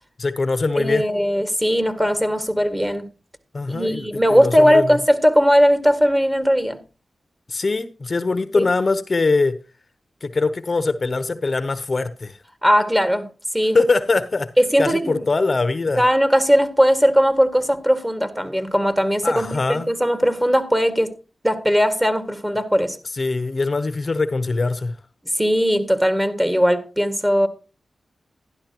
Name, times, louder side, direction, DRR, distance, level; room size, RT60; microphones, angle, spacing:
voice 1, 0.2-1.1 3.5-4.9 7.5-9.6 10.2-12.4 13.7-14.5 14.8-16.0 19.2-19.9 23.1-25.0, left 3 dB, 50° left, 0.8 m, -22 dB
voice 2, 0.8-3.1 3.7-6.8 8.5-8.7 12.6-13.3 13.5-13.8 14.6-15.3 16.0-21.2 21.4-23.0 25.4-27.5, equal, 10° right, 1.9 m, -18 dB
11.5 x 11.5 x 2.9 m
cardioid pair, 50°, 0 cm